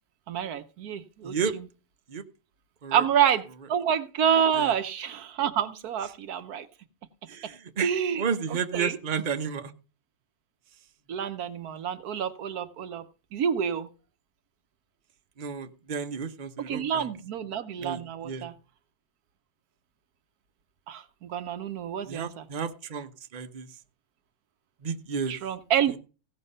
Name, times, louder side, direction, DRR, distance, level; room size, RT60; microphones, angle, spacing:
voice 1, 0.3-1.7 2.9-6.7 7.8-9.0 11.1-13.1 13.3-13.9 16.6-18.5 20.9-22.5 25.3-26.0, right 8 dB, 75° right, 11 dB, 1.3 m, -28 dB
voice 2, 7.3-7.9 8.2-9.7 15.4-17.1 17.8-18.0 18.2-18.5 22.1-23.7 24.8-25.3, right 6 dB, 35° right, 7 dB, 1.0 m, -32 dB
16.5 x 6.3 x 5.5 m, 0.34 s
omnidirectional pair, 1.6 m